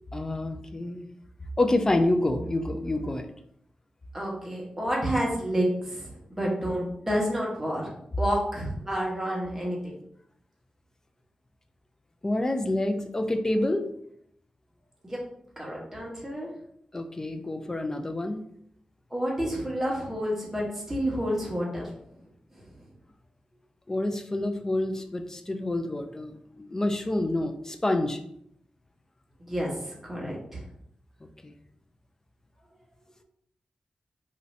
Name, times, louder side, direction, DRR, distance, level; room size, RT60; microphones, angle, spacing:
voice 1, 0.1-1.1 1.6-3.3 12.2-13.9 16.9-18.4 23.9-28.2 31.4-31.5, left 1 dB, 20° left, 6 dB, 0.3 m, -28 dB
voice 2, 4.1-7.9 8.2-9.9 15.0-15.3 15.6-16.5 19.1-21.9 22.5-22.7 29.5-30.6, equal, 10° right, -4 dB, 1.0 m, -29 dB
2.6 x 2.5 x 3.1 m, 0.70 s
wide cardioid pair, 100°, 2 cm